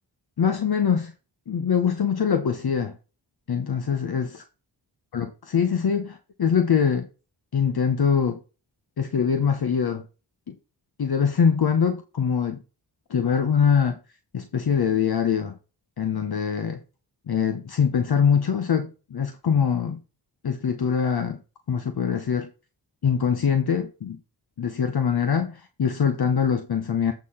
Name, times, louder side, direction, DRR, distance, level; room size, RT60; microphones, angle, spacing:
voice 1, 0.4-1.1 1.5-2.9 3.5-4.4 5.1-7.1 7.5-8.4 9.0-10.0 10.5-10.6 11.0-12.6 13.1-14.0 14.3-15.5 16.0-16.8 17.3-20.0 20.4-21.4 21.7-22.5 23.0-24.2 24.6-27.1, left 7 dB, 60° left, 1.0 m, -23 dB
8.4 x 4.0 x 5.5 m
cardioid pair, 70°, 43 cm